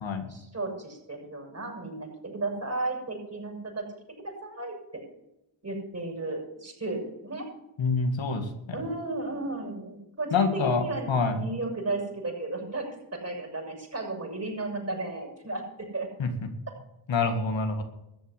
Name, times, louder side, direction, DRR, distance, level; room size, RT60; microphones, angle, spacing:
voice 1, 0.3-3.9 4.2-4.8 5.6-7.5 8.7-15.6 15.9-16.1, right 2 dB, 30° right, 1 dB, 7.0 m, -34 dB
voice 2, 7.8-8.5 10.3-11.4 16.2-16.3 17.1-17.8, left 4 dB, 65° left, 5 dB, 2.1 m, -26 dB
14.0 x 8.1 x 8.3 m, 0.88 s
cardioid pair, 55°, 49 cm